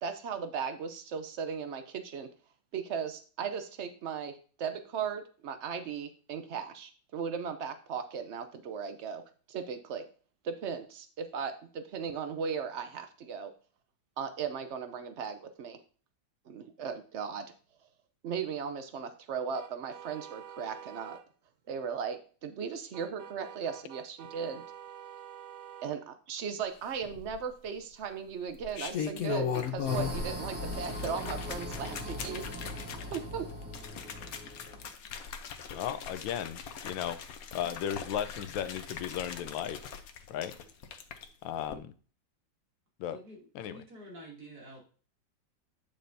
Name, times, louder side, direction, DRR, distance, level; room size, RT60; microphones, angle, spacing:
voice 1, 0.0-2.3 2.7-4.3 4.6-9.2 9.5-10.0 10.4-13.5 14.2-15.8 16.5-17.5 18.2-21.2 21.7-24.6 25.8-32.4 33.1-33.5, right 6 dB, 90° right, 0.6 m, -37 dB
sound 1, 19.5-21.3 22.9-26.0, right 9 dB, 70° right, 1.2 m, -48 dB
sound 2, 27.0-27.7 28.5-30.3 30.6-41.2 41.6-41.7, left 7 dB, 60° left, 1.1 m, -39 dB
sound 3, 29.8-34.9, left 1 dB, 5° right, 2.6 m, -40 dB
voice 2, 35.7-37.2 37.5-39.8 40.3-40.5 41.4-41.9 43.0-43.2 43.5-43.8, left 10 dB, 80° left, 1.4 m, -35 dB
voice 3, 43.1-44.8, right 1 dB, 50° right, 3.1 m, -49 dB
8.7 x 6.8 x 2.6 m
omnidirectional pair, 2.0 m